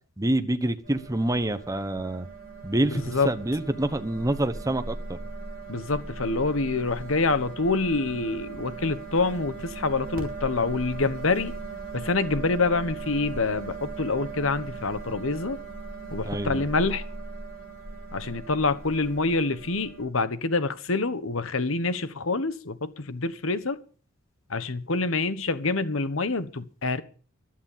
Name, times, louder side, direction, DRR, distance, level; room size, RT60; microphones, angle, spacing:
voice 1, 0.2-2.3 2.6-5.2 16.2-16.6, right 1 dB, 15° right, 1.0 m, -27 dB
sound 1, 0.8-20.0, right 3 dB, 45° right, 6.4 m, -39 dB
voice 2, 5.7-11.5 11.9-15.6 16.1-17.0 18.1-23.8 24.5-27.0, left 3 dB, 70° left, 1.2 m, -26 dB
15.0 x 12.0 x 5.7 m
head